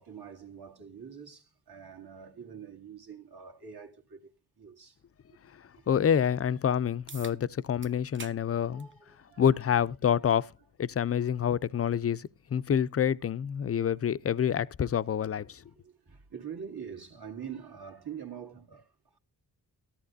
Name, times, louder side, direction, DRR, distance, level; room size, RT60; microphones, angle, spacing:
voice 1, 0.0-4.3 4.6-5.0 5.8-5.9 8.6-9.6 15.7-19.2, right 7 dB, 60° right, 2.0 m, -45 dB
voice 2, 5.9-8.9 9.4-10.5 10.8-15.6, left 8 dB, 35° left, 0.5 m, -27 dB
sound 1, 7.1-7.4 7.8-8.4 8.8-8.9 10.0-10.1 15.0-15.1, right 4 dB, 30° right, 0.7 m, -45 dB
14.0 x 11.5 x 2.6 m
cardioid pair, 55°, 43 cm